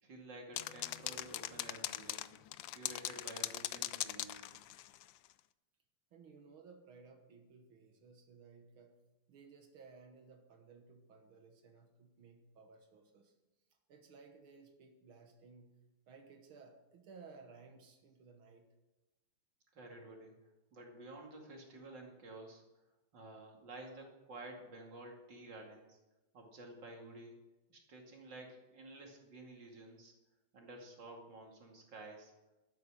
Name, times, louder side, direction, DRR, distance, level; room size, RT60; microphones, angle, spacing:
voice 1, 0.0-2.3 2.7-4.6 19.7-20.3 20.7-22.6 23.1-26.0 26.3-27.4 27.7-30.1 30.5-32.3, right 2 dB, 55° right, 0 dB, 2.9 m, -52 dB
sound 1, 0.6-5.1, left 14 dB, 75° left, 1.2 m, -40 dB
voice 2, 6.1-9.0 9.3-13.3 13.9-15.8 16.1-18.7, right 4 dB, 75° right, 4 dB, 2.1 m, -58 dB
12.5 x 9.3 x 6.2 m, 1.0 s
omnidirectional pair, 2.3 m